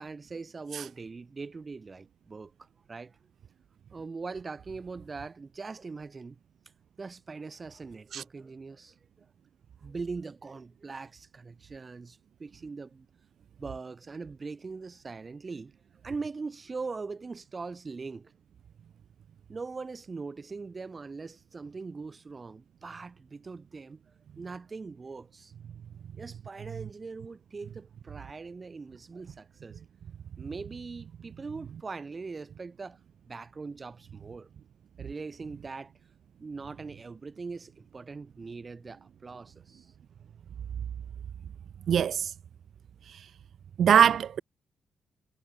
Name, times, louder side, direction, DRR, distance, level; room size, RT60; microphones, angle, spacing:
voice 1, 0.0-2.5 2.9-3.1 3.9-6.4 7.0-8.9 9.8-13.1 13.6-15.7 16.0-18.3 19.5-24.0 24.4-25.5 26.2-29.8 30.4-33.0 33.3-34.5 35.0-35.9 36.4-39.9, right 4 dB, 30° right, 7.4 m, -41 dB
voice 2, 41.9-42.3 43.8-44.4, right 8 dB, 65° right, 1.2 m, -22 dB
cardioid pair, 115°, 0 cm